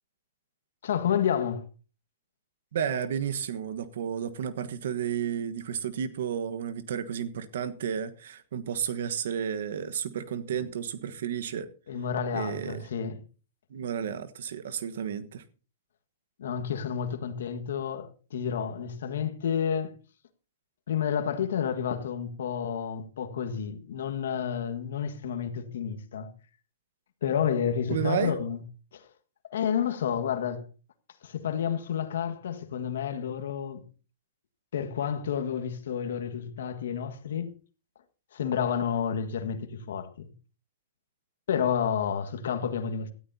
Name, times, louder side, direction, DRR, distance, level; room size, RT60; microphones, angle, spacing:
voice 1, 0.8-1.7 10.5-10.6 11.9-13.2 16.4-19.9 20.9-26.3 27.2-28.6 28.9-29.1 29.5-30.7 31.2-33.9 34.7-37.5 38.3-40.3 41.5-43.1, left 8 dB, 75° left, 1.7 m, -30 dB
voice 2, 2.7-11.7 12.3-12.9 13.7-15.4 27.9-28.4, right 8 dB, 70° right, 1.3 m, -32 dB
18.0 x 13.0 x 2.8 m
hypercardioid pair, 130°, 0 cm